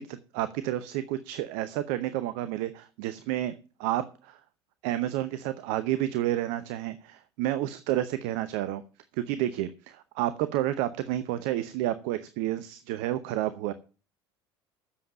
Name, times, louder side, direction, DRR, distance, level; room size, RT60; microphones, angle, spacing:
voice 1, 0.0-3.5 3.8-4.4 4.8-8.8 9.1-13.7, right 13 dB, 60° right, 0.8 m, -30 dB
8.5 x 7.3 x 8.8 m
figure-of-eight pair, 65°, 14 cm